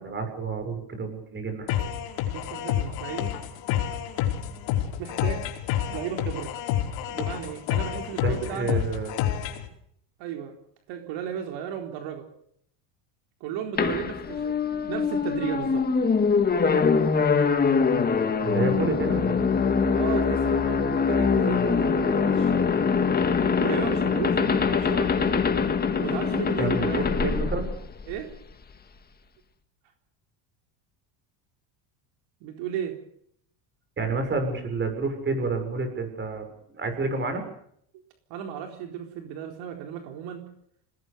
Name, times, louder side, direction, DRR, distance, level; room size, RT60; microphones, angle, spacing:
voice 1, 0.0-1.9 8.2-9.2 18.4-19.4 26.6-27.7 34.0-37.4, right 3 dB, 25° right, 7 dB, 6.7 m, -29 dB
sound 1, 1.7-9.7, left 11 dB, 60° left, 5.1 m, -29 dB
voice 2, 2.3-3.3 5.0-5.5 5.9-6.5 7.1-8.8 10.2-10.6 10.9-12.3 13.4-14.6 14.9-15.8 19.9-22.6 23.6-25.5 26.0-27.2 28.1-28.3 32.4-33.0 38.3-40.5, right 9 dB, 60° right, 4 dB, 4.2 m, -34 dB
sound 2, 13.8-28.3, left 5 dB, 20° left, 2.0 m, -23 dB
27.5 x 19.5 x 6.9 m, 0.68 s
cardioid pair, 145°, 49 cm